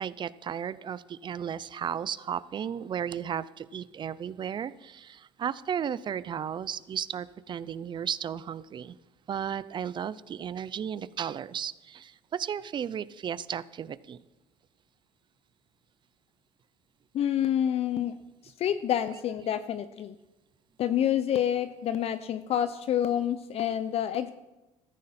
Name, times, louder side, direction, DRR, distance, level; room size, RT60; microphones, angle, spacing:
voice 1, 0.0-8.9 9.3-14.2, right 8 dB, 35° right, 18 dB, 0.6 m, -34 dB
voice 2, 17.1-18.1 18.4-20.1 20.8-24.3, left 10 dB, 50° left, 12 dB, 0.6 m, -28 dB
15.0 x 13.5 x 4.3 m, 1.0 s
supercardioid pair, 105°, 13 cm